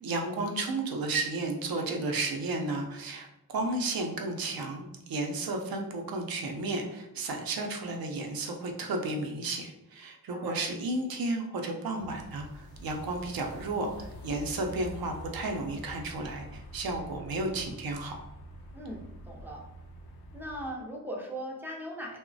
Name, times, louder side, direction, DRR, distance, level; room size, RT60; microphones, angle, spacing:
voice 1, 0.0-18.2, right 2 dB, 70° right, 2 dB, 0.5 m, -33 dB
voice 2, 10.3-10.7 18.7-19.6 20.3-22.2, equal, 5° right, -2 dB, 0.3 m, -39 dB
sound 1, 12.0-20.7, left 1 dB, 80° left, 0.5 m, -46 dB
2.9 x 2.0 x 2.6 m, 0.90 s
wide cardioid pair, 170°, 37 cm